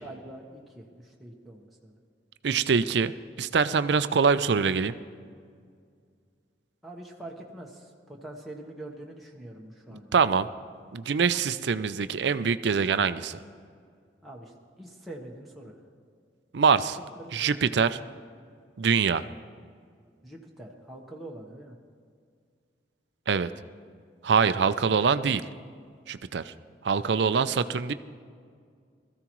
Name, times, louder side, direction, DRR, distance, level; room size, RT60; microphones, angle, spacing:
voice 1, 0.0-2.0 6.8-10.2 14.2-14.5 14.8-15.8 17.2-17.5 20.2-21.8 24.4-24.6 24.9-25.0, right 1 dB, ahead, -3 dB, 1.1 m, -44 dB
voice 2, 2.4-5.0 9.9-10.5 10.9-13.4 16.5-17.0 17.3-18.0 18.8-19.3 23.3-23.5 24.2-25.4 26.1-26.5 26.8-27.9, right 5 dB, 70° right, 13 dB, 0.5 m, -24 dB
20.5 x 14.0 x 3.1 m, 2.1 s
head